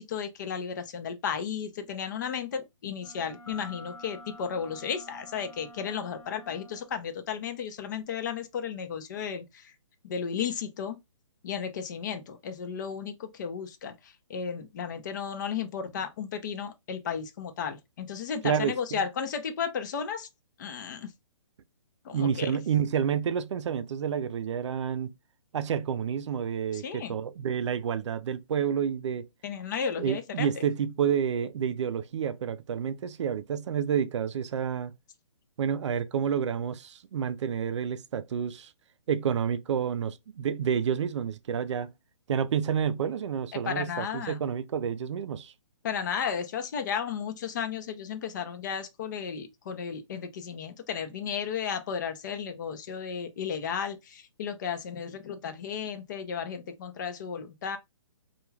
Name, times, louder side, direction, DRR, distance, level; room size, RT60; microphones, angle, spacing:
voice 1, 0.0-9.7 10.0-11.0 11.4-20.3 20.6-21.1 22.0-22.5 26.7-27.2 29.4-30.5 43.6-44.4 45.8-57.8, left 7 dB, 35° left, 0.4 m, -34 dB
Wind instrument woodwind instrument, 3.0-7.0, equal, 15° left, 0.8 m, -50 dB
sound 1, 3.5-6.2, left 4 dB, 65° left, 1.2 m, -51 dB
voice 2, 18.4-19.0 22.1-25.1 25.5-29.3 30.0-34.9 35.6-38.7 39.1-41.9 42.3-45.5, right 8 dB, 60° right, 0.4 m, -29 dB
2.3 x 2.2 x 3.1 m
hypercardioid pair, 145°, 17 cm